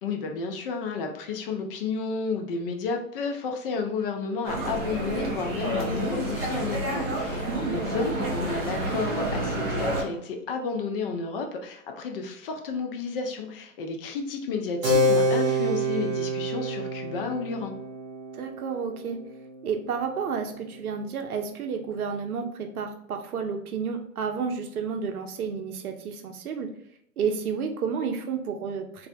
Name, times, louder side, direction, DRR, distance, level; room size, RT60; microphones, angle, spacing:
voice 1, 0.0-17.7, left 4 dB, 40° left, 3 dB, 0.4 m, -31 dB
sound 1, 4.4-10.0, right 1 dB, 20° right, 0.3 m, -29 dB
voice 2, 7.5-7.8 18.3-19.2 19.6-26.7 27.2-29.1, right 6 dB, 85° right, 5 dB, 0.6 m, -31 dB
Keyboard (musical), 14.8-20.9, equal, 45° right, 0.7 m, -28 dB
2.6 x 2.0 x 2.5 m, 0.73 s
hypercardioid pair, 115°, 43 cm